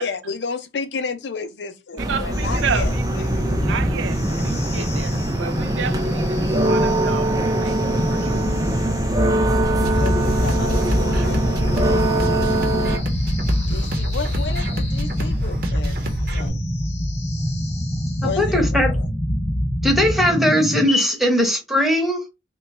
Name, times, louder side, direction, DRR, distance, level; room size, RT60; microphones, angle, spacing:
voice 1, 0.0-3.4 9.5-12.2 13.7-16.0 16.3-16.6 18.2-19.1, left 5 dB, 65° left, 0.5 m, -32 dB
sound 1, 2.0-13.0, right 1 dB, 20° right, 0.4 m, -23 dB
voice 2, 2.1-3.0 3.6-8.5, right 6 dB, 80° right, 0.4 m, -31 dB
sound 2, 2.3-20.9, equal, 35° left, 0.7 m, -25 dB
sound 3, 9.6-16.5, equal, 50° right, 0.8 m, -27 dB
voice 3, 18.2-18.9 19.8-22.2, equal, ahead, 0.8 m, -19 dB
3.1 x 2.3 x 4.0 m
head